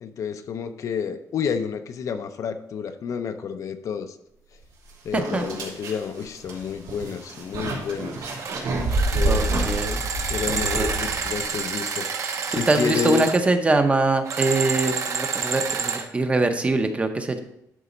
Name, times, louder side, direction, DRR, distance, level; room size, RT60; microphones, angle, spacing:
voice 1, 0.0-4.2 5.0-8.3 9.1-9.6 10.3-13.3, left 7 dB, 55° left, 8 dB, 0.6 m, -30 dB
sound 1, 4.6-4.7 5.1-11.5, right 2 dB, 85° right, 2.7 m, -28 dB
voice 2, 5.1-5.4 9.3-10.0 10.5-10.9 12.5-17.4, right 2 dB, 20° right, 7 dB, 0.7 m, -23 dB
sound 2, 8.4-8.6 8.9-13.4 14.2-16.1, right 5 dB, 50° right, 0.8 m, -28 dB
11.0 x 4.0 x 5.1 m, 0.80 s
wide cardioid pair, 170°, 7 cm